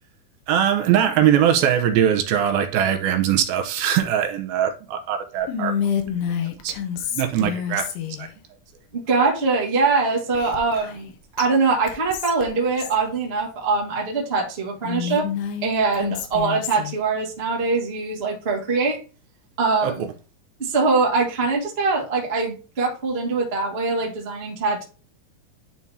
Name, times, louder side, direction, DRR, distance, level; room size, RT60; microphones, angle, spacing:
voice 1, 0.5-5.7 6.6-6.7 7.1-7.8 8.2-8.3 19.8-20.1, right 9 dB, 80° right, 2.4 m, -21 dB
Whispering, 5.5-8.3 10.3-11.1 11.4-11.5 11.9-13.0 14.8-17.0, left 8 dB, 80° left, 2.9 m, -28 dB
voice 2, 8.9-11.1 11.4-15.3 15.6-19.0 19.6-20.1 20.6-24.8, right 4 dB, 60° right, 0.6 m, -23 dB
10.5 x 3.6 x 2.7 m
omnidirectional pair, 4.5 m